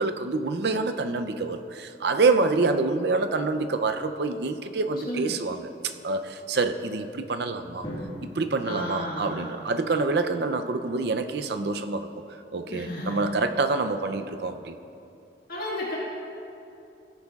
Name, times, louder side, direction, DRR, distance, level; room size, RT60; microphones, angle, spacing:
voice 1, 0.0-5.7 6.0-7.9 8.4-12.1 12.5-14.7, right 3 dB, 65° right, 8 dB, 0.5 m, -26 dB
voice 2, 5.0-5.4 8.6-9.5 12.7-13.2 15.5-16.0, left 1 dB, 50° left, -6 dB, 1.7 m, -33 dB
Drum, 7.8-10.0, equal, 35° left, 1.7 m, -40 dB
16.0 x 9.7 x 2.4 m, 2.7 s
head